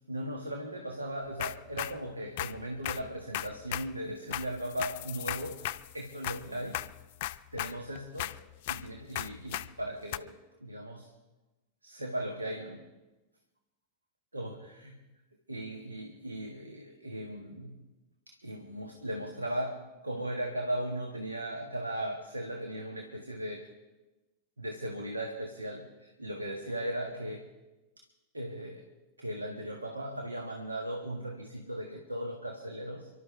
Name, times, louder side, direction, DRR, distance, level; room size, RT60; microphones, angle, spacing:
voice 1, 0.1-6.8 7.5-8.3 8.7-11.1 11.8-12.8 14.3-15.0 15.5-17.8 18.3-23.7 24.6-27.5 28.3-28.8 29.2-33.1, right 1 dB, 80° right, 3 dB, 1.7 m, -37 dB
sound 1, 1.4-2.0 2.4-3.9 4.3-6.5 6.7-8.9 9.2-9.7 10.1-10.2, left 16 dB, 50° left, 0.6 m, -36 dB
29.5 x 12.0 x 3.5 m, 1.1 s
figure-of-eight pair, 90°, 0 cm